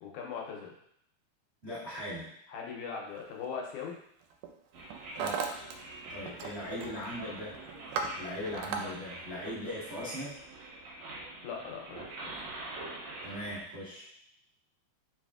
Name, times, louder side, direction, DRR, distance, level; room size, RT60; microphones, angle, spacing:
voice 1, 0.0-0.7 2.5-4.0 6.4-6.6 11.4-12.4, left 6 dB, 80° left, 0 dB, 2.0 m, -40 dB
voice 2, 1.6-2.3 5.2-5.4 6.1-7.6 8.1-10.4 13.2-14.1, left 1 dB, 40° right, -10 dB, 0.9 m, -39 dB
Hammer, 3.2-3.5 4.2-4.5 4.8-5.7 6.0-6.5 6.8-7.1 7.5-8.8, right 5 dB, 85° right, 2.1 m, -36 dB
sound 1, 4.7-13.6, right 2 dB, 65° right, 2.0 m, -45 dB
4.6 x 4.0 x 2.4 m, 0.71 s
omnidirectional pair, 3.6 m